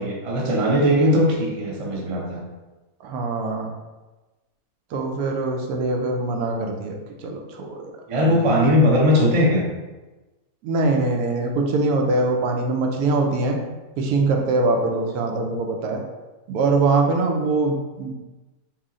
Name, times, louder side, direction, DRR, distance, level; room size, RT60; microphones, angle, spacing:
voice 1, 0.0-2.4 8.1-9.6, left 1 dB, 40° right, -2 dB, 0.4 m, -19 dB
voice 2, 3.0-3.7 4.9-7.9 8.2-8.3 10.6-13.6 14.0-16.0 16.5-18.2, right 3 dB, 85° right, 2 dB, 1.1 m, -23 dB
3.0 x 2.7 x 3.6 m, 1.1 s
omnidirectional pair, 1.5 m